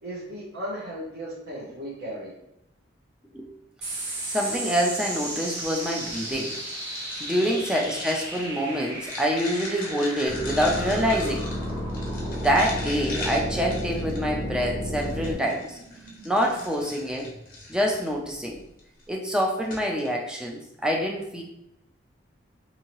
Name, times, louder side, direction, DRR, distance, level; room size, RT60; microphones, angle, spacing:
voice 1, 0.0-2.3 7.5-7.6, equal, 80° right, -9 dB, 0.9 m, -36 dB
sound 1, 3.8-18.6, right 1 dB, 55° right, 1.0 m, -38 dB
voice 2, 4.3-6.5 7.2-11.5 12.4-15.8 16.2-17.3 17.7-18.6 19.1-21.4, equal, 5° right, -1 dB, 0.4 m, -26 dB
sound 2, 5.9-14.4 15.0-18.1 18.8-19.0 19.3-19.4 19.6-20.1, left 2 dB, 50° left, 0.8 m, -40 dB
sound 3, 10.3-15.3, equal, 25° right, 1.3 m, -31 dB
2.8 x 2.7 x 2.9 m, 0.83 s
head